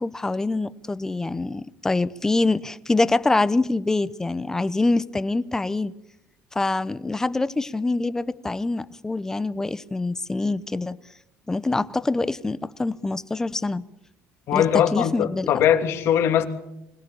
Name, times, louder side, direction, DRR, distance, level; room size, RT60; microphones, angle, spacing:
voice 1, 0.0-5.9 6.5-11.0 11.5-13.8 14.5-15.5, left 2 dB, 10° left, 0.8 m, -25 dB
voice 2, 14.5-16.4, left 10 dB, 60° left, 2.9 m, -20 dB
25.0 x 17.5 x 8.6 m
cardioid pair, 150°, 5 cm